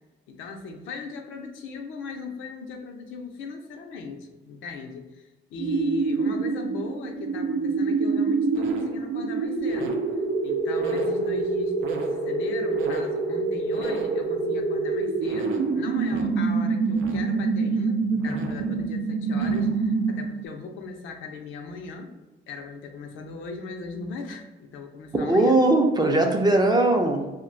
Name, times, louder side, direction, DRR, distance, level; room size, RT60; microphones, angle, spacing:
voice 1, 0.3-10.0 10.4-22.2 22.5-25.6, left 4 dB, 80° left, 4 dB, 0.5 m, -38 dB
sound 1, 5.6-20.4, right 4 dB, 80° right, 0.5 m, -26 dB
voice 2, 25.1-27.3, right 2 dB, 20° right, 3 dB, 0.5 m, -20 dB
2.3 x 2.2 x 3.7 m, 1.1 s
cardioid pair, 90°, 20 cm